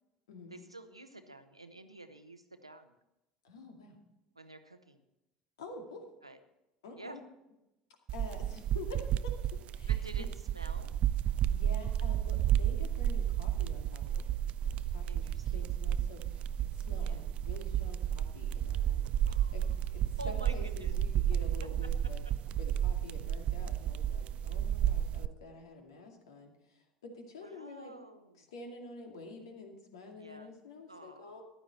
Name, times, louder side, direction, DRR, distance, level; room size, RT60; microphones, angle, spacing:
voice 1, 0.5-2.9 4.3-5.0 6.2-6.4 7.0-7.2 9.9-10.9 12.8-12.9 15.0-15.6 17.0-17.2 19.3-19.7 20.2-21.0 21.8-22.1 27.4-28.5 30.2-30.5 30.9-31.4, right 2 dB, 90° right, 9 dB, 0.8 m, -49 dB
voice 2, 3.4-4.0 5.6-6.1 6.8-7.2 8.1-10.2 11.5-14.3 14.6-19.1 19.5-22.2 22.6-27.9 28.4-31.4, left 3 dB, 70° left, 3 dB, 2.3 m, -48 dB
sound 1, 8.1-25.3, right 10 dB, 45° right, 0.5 m, -32 dB
14.5 x 11.0 x 4.2 m, 0.93 s
figure-of-eight pair, 65°, 3 cm